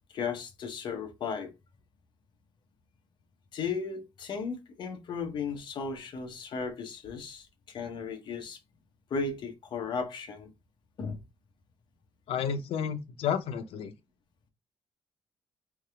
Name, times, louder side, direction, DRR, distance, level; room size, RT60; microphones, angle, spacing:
voice 1, 0.1-1.5 3.5-8.6 9.1-10.5 11.0-11.2, left 5 dB, 50° left, 1.0 m, -35 dB
voice 2, 12.3-13.9, left 7 dB, 75° left, 0.7 m, -31 dB
3.5 x 3.3 x 3.4 m
cardioid pair, 170°, 10 cm